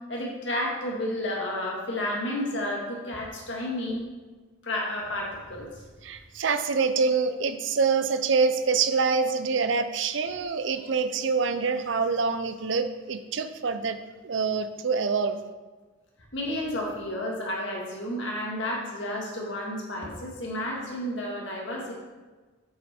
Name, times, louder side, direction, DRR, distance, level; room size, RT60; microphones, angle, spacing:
voice 1, 0.1-4.1 4.6-5.7 16.3-21.9, left 1 dB, 65° left, -2 dB, 1.8 m, -31 dB
voice 2, 6.0-14.0 14.2-15.4, right 5 dB, 65° right, 9 dB, 0.5 m, -26 dB
7.6 x 5.5 x 4.3 m, 1.3 s
head